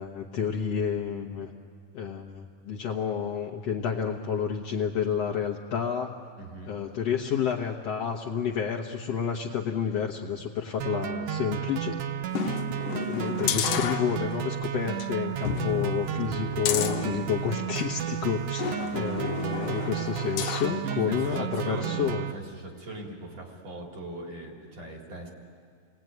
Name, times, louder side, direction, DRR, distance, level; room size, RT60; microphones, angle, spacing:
voice 1, 0.0-1.5 1.9-6.2 6.7-12.0 13.1-22.2, left 7 dB, 60° left, -1 dB, 1.9 m, -30 dB
voice 2, 6.4-6.8 10.4-10.5 18.8-19.1 20.8-25.3, right 2 dB, 50° right, 0 dB, 4.4 m, -40 dB
sound 1, 10.8-22.3, right 10 dB, 70° right, 2.1 m, -32 dB
sound 2, 12.3-14.5 14.9-15.1 15.4-18.0 18.6-20.8 21.3-21.4, left 8 dB, 80° left, 2.5 m, -32 dB
29.5 x 20.0 x 9.3 m, 2.2 s
omnidirectional pair, 3.8 m